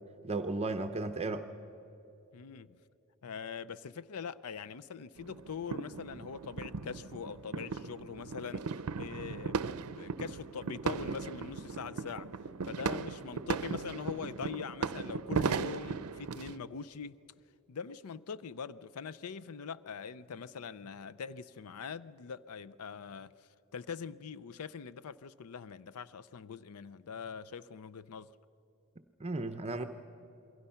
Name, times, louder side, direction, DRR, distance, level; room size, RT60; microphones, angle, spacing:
voice 1, 0.2-1.5 29.2-29.8, right 2 dB, 30° right, 0.7 m, -34 dB
voice 2, 2.3-2.8 3.2-8.6 9.0-12.3 12.7-17.2 17.7-28.3, left 6 dB, 80° left, 0.5 m, -43 dB
sound 1, 5.2-16.6, right 5 dB, 80° right, 0.6 m, -37 dB
28.5 x 22.5 x 5.7 m
head